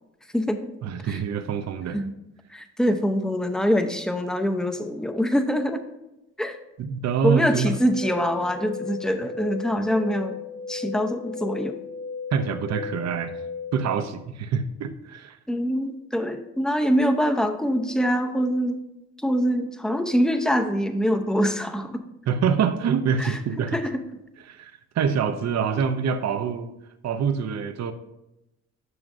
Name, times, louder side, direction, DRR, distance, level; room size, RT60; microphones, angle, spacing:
voice 1, 0.8-2.0 6.8-7.8 12.3-13.3 13.7-15.4 22.3-23.8 24.5-26.7 27.0-27.9, right 6 dB, 60° right, 9 dB, 0.7 m, -25 dB
voice 2, 2.5-5.8 6.4-6.6 7.2-10.4 10.7-11.8 15.5-18.8 19.2-22.0 23.2-23.4 23.7-24.0, equal, ahead, 7 dB, 0.7 m, -24 dB
sound 1, 7.8-13.9, left 5 dB, 90° left, 1.3 m, -35 dB
11.0 x 6.0 x 2.6 m, 0.90 s
cardioid pair, 90°, 30 cm